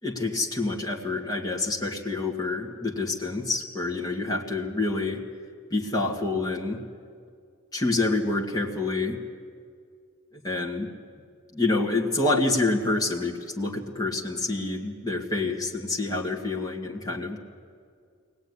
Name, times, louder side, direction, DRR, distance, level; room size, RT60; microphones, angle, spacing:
voice 1, 0.0-5.2 5.7-6.8 7.7-9.2 10.3-10.9 11.5-17.4, left 2 dB, 15° left, -1 dB, 2.1 m, -27 dB
23.0 x 18.5 x 9.8 m, 2.2 s
head